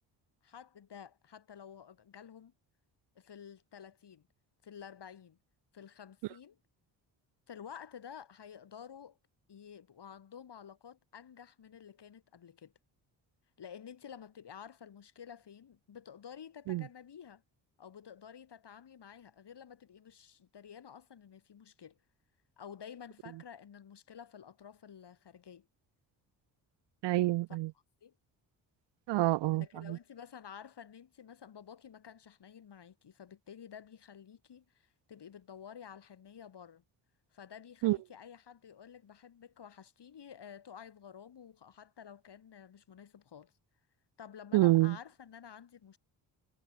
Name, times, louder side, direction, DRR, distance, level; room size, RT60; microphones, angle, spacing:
voice 1, 0.4-2.5 3.2-4.3 4.6-5.4 5.7-6.6 7.5-9.2 9.5-12.7 13.6-17.4 17.8-22.0 22.6-25.7 28.0-28.1 29.6-36.8 37.3-43.5 44.2-46.0, left 8 dB, 60° left, 5.1 m, -51 dB
voice 2, 27.0-27.7 29.1-30.0 37.8-38.0 44.5-45.0, right 18 dB, 65° right, 0.5 m, -27 dB
supercardioid pair, 55°, 46 cm